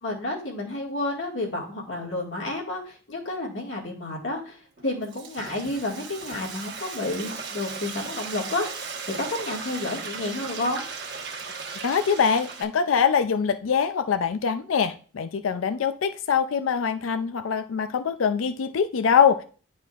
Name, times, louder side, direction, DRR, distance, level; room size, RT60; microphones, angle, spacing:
voice 1, 0.0-8.8 9.2-10.8, left 2 dB, 65° left, -1 dB, 2.0 m, -30 dB
Frying (food), 4.8-12.6, right 5 dB, 55° right, 1.1 m, -37 dB
voice 2, 11.8-19.4, left 6 dB, 90° left, 10 dB, 0.4 m, -23 dB
10.5 x 4.2 x 2.4 m, 0.41 s
head